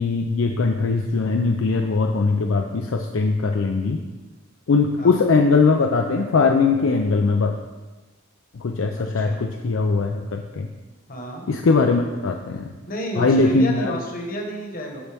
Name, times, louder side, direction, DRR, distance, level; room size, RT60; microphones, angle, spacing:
voice 1, 0.0-4.0 4.7-7.5 8.6-10.7 11.5-12.7 13.2-13.9, left 4 dB, 65° left, 3 dB, 0.4 m, -20 dB
voice 2, 8.9-9.4 11.1-11.4 12.9-15.0, equal, 40° left, 1 dB, 1.2 m, -31 dB
12.5 x 4.3 x 3.4 m, 1.2 s
head